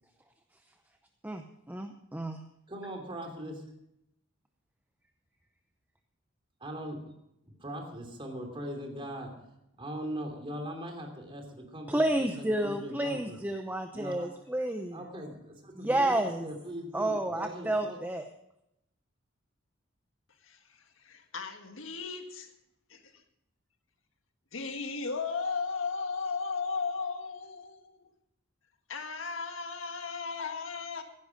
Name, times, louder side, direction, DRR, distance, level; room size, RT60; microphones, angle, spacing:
voice 1, 1.2-2.4 11.9-15.0 15.8-16.5 16.9-18.2, right 1 dB, 10° right, 5 dB, 0.7 m, -30 dB
voice 2, 2.7-3.6 6.6-7.1 7.6-9.3 9.8-13.4 13.9-18.0, equal, 25° right, 3 dB, 3.0 m, -40 dB
voice 3, 21.0-22.5 22.9-23.1 24.5-28.1 28.9-31.0, left 4 dB, 75° left, 6 dB, 1.7 m, -35 dB
15.5 x 11.0 x 5.1 m, 0.81 s
head